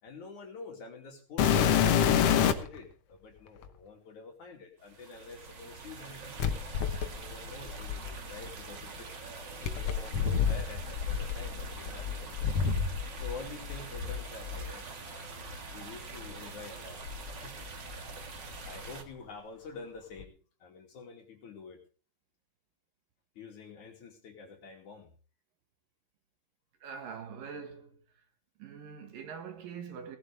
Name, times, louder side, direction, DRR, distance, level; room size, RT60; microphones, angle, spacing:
voice 1, 0.0-6.7 7.2-17.0 17.4-17.7 18.5-20.3 20.6-21.8 23.4-25.1, left 4 dB, 55° left, 3.8 m, -47 dB
sound 1, 1.4-2.8 3.6-3.7 6.4-8.5 9.6-13.4 13.6-14.7 15.5-15.6 16.2-16.3 17.0-18.1 18.4-18.9 20.2-20.3, left 8 dB, 85° left, 1.3 m, -29 dB
sound 2, 4.8-19.0, right 4 dB, 45° right, 1.6 m, -45 dB
voice 2, 26.8-28.0 28.6-30.2, right 6 dB, 65° right, 3.2 m, -43 dB
18.5 x 11.5 x 3.4 m
omnidirectional pair, 4.5 m